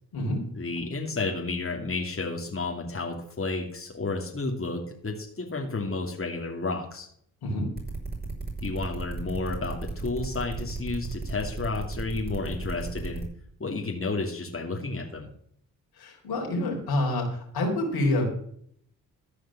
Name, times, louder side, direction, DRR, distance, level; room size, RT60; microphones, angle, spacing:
voice 1, 0.5-7.1 8.6-13.2 13.6-15.3, left 3 dB, 35° left, 1 dB, 2.7 m, -31 dB
sound 1, 7.8-13.2, right 3 dB, 25° right, 5.6 m, -35 dB
voice 2, 16.0-18.3, left 1 dB, 75° left, 0 dB, 4.1 m, -27 dB
14.0 x 5.0 x 7.5 m, 0.64 s
supercardioid pair, 45°, 38 cm